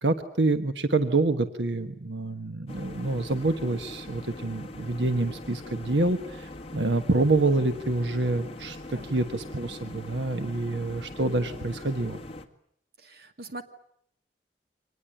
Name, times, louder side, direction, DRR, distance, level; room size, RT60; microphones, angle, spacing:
voice 1, 0.0-12.2, right 2 dB, 85° right, 8 dB, 1.3 m, -27 dB
sound 1, 2.7-12.5, left 1 dB, 35° left, 1.8 m, -42 dB
voice 2, 13.0-13.6, right 2 dB, 60° right, 7 dB, 2.3 m, -41 dB
25.0 x 19.5 x 9.9 m, 0.70 s
head